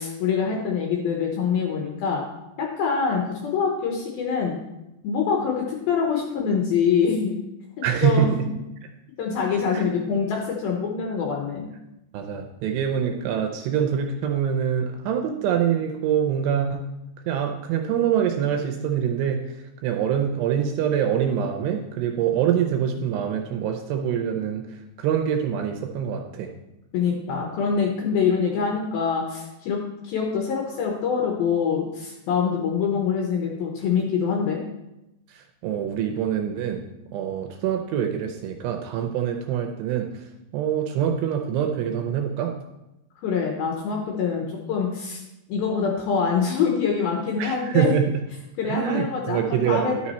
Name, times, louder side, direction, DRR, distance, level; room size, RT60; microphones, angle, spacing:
voice 1, 0.0-2.2 2.6-4.6 5.0-7.4 7.8-8.3 9.2-11.7 26.9-34.6 43.2-45.2 45.5-48.0 48.6-50.0, left 6 dB, 75° left, 0 dB, 2.3 m, -25 dB
voice 2, 7.8-8.5 9.7-9.8 12.1-16.8 17.3-19.4 19.8-24.6 25.0-26.5 35.6-36.8 37.1-40.1 40.5-42.5 47.4-48.0 48.7-50.0, right 9 dB, 80° right, 4 dB, 2.6 m, -24 dB
11.0 x 6.2 x 4.2 m, 0.92 s
omnidirectional pair, 5.3 m